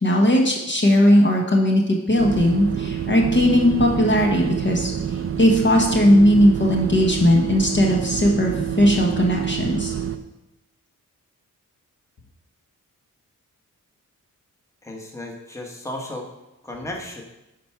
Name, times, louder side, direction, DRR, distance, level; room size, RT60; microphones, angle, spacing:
voice 1, 0.0-4.9 5.4-9.9, equal, 35° left, -1 dB, 1.1 m, -18 dB
sound 1, 2.2-10.2, right 8 dB, 45° right, 0.6 m, -27 dB
voice 2, 14.8-16.3 16.6-17.2, left 1 dB, 10° left, 0 dB, 1.2 m, -34 dB
10.5 x 4.5 x 5.8 m, 0.96 s
wide cardioid pair, 175°, 33 cm